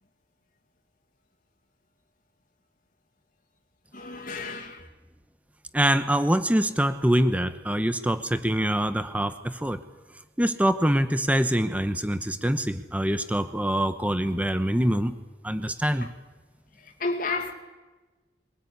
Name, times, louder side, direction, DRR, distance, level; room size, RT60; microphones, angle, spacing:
voice 1, 3.9-4.9 17.0-17.5, left 3 dB, 50° left, 2.2 m, -31 dB
voice 2, 5.7-9.8 10.4-15.2 15.4-16.1, right 1 dB, 10° right, 0.9 m, -24 dB
23.5 x 18.5 x 9.6 m
head